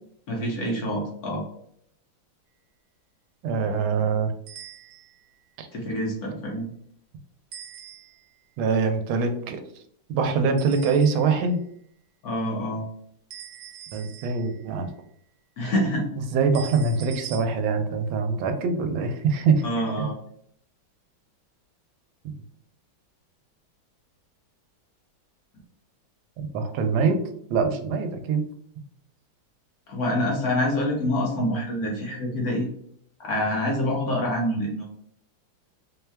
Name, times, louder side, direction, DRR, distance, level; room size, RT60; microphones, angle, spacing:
voice 1, 0.3-1.4 5.7-6.7 12.2-12.8 15.6-16.1 19.6-20.2 29.9-32.7 33.2-34.9, left 1 dB, 65° left, -1 dB, 1.1 m, -26 dB
voice 2, 3.4-4.3 5.6-5.7 8.6-9.6 10.1-11.6 13.9-14.9 16.3-19.6 20.0-20.1 26.4-27.2 27.5-28.5, right 5 dB, 85° right, 7 dB, 1.4 m, -24 dB
sound 1, 4.5-5.3 7.5-8.4 10.6-11.5 13.3-14.7 16.5-17.4, right 9 dB, 70° right, 1.3 m, -44 dB
4.4 x 2.2 x 3.3 m, 0.68 s
omnidirectional pair, 2.2 m